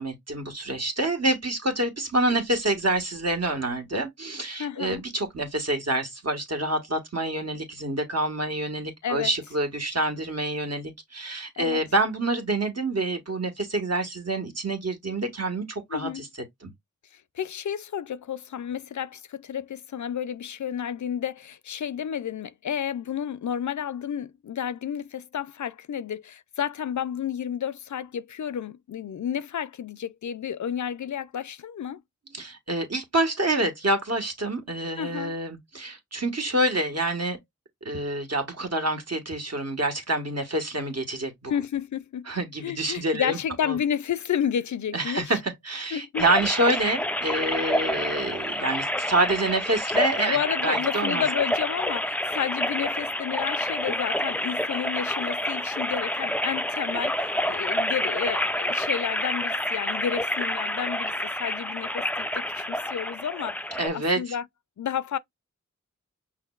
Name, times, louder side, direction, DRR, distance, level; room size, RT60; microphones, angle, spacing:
voice 1, 0.0-16.3 16.6-16.7 32.3-37.4 37.8-41.5 42.3-43.4 43.6-43.8 44.9-50.4 50.6-51.2 63.8-64.3, right 2 dB, 55° right, 1.6 m, -27 dB
voice 2, 4.6-5.0 9.0-9.3 11.6-11.8 15.9-16.2 17.1-32.0 35.0-35.3 41.5-42.3 42.6-45.4 45.9-46.2 50.2-63.6 63.9-64.4 64.8-65.2, left 8 dB, 75° left, 0.4 m, -31 dB
sound 1, 46.1-63.9, left 1 dB, 5° left, 0.4 m, -28 dB
5.7 x 3.1 x 2.3 m
cardioid pair, 45°, 30 cm